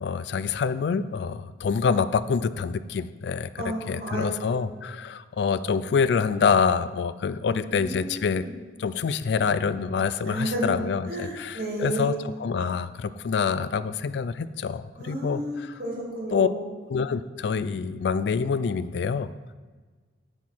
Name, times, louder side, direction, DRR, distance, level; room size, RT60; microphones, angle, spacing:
voice 1, 0.0-3.5 3.9-8.4 8.8-15.8 16.3-16.5 16.9-19.3, left 5 dB, 70° left, 14 dB, 0.3 m, -26 dB
voice 2, 3.6-4.6 7.5-8.5 10.3-10.7 11.1-12.2 15.0-16.6, equal, 50° right, -4 dB, 2.6 m, -32 dB
9.4 x 4.5 x 4.5 m, 1.4 s
head